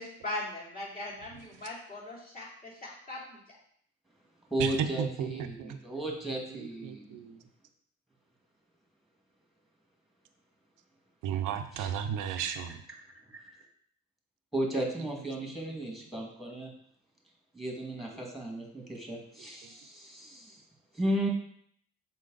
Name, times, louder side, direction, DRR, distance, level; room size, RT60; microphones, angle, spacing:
voice 1, 0.0-3.4, left 2 dB, 30° left, -5 dB, 2.9 m, -40 dB
voice 2, 1.3-1.7 4.6-5.8 6.5-7.4 11.2-12.8 15.4-15.5 19.6-19.7, right 8 dB, 85° right, 7 dB, 0.6 m, -34 dB
voice 3, 4.5-7.2 11.8-11.9 12.4-12.5 13.3-13.6 14.5-16.7 17.5-20.6 20.9-21.3, right 1 dB, ahead, -1 dB, 1.9 m, -35 dB
6.4 x 4.4 x 3.9 m, 0.65 s
cardioid pair, 90°, 30 cm